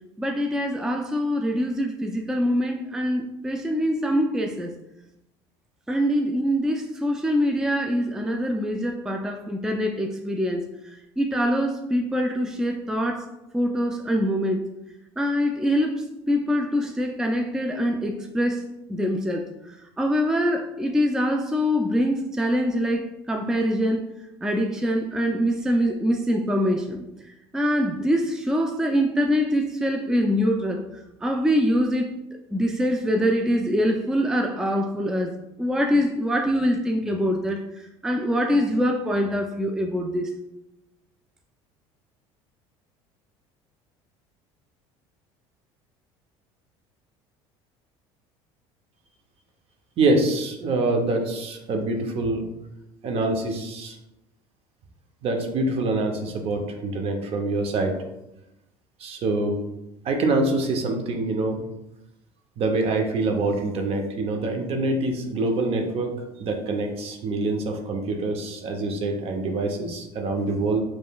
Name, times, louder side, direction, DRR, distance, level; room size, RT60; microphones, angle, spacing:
voice 1, 0.2-4.7 5.9-10.6 11.2-14.6 15.2-18.6 18.9-24.1 24.4-27.0 27.5-30.8 31.2-32.1 32.5-40.3, equal, 5° right, 3 dB, 0.4 m, -24 dB
voice 2, 50.0-52.4 53.0-53.9 55.2-58.0 59.0-59.6 60.0-61.6 62.6-66.1 66.4-70.8, right 2 dB, 50° right, 4 dB, 0.8 m, -25 dB
5.2 x 3.1 x 2.3 m, 0.90 s
supercardioid pair, 95°, 13 cm